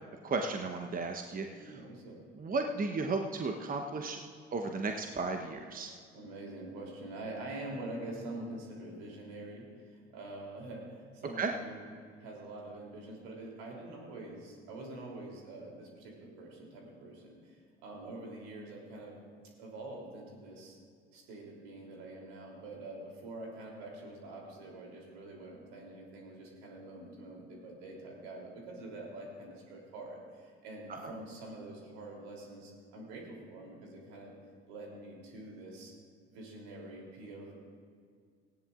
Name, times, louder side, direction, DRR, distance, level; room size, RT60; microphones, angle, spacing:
voice 1, 0.2-1.8 2.3-4.2 4.5-6.0 11.4-11.5 30.9-31.1, right 3 dB, 25° right, 4 dB, 1.0 m, -34 dB
voice 2, 1.6-2.2 6.1-9.7 10.1-11.8 12.2-19.2 19.6-20.8 21.1-34.3 34.7-35.9 36.3-37.5, right 2 dB, 70° right, -1 dB, 3.3 m, -45 dB
18.5 x 16.0 x 2.5 m, 2.1 s
figure-of-eight pair, 55°, 32 cm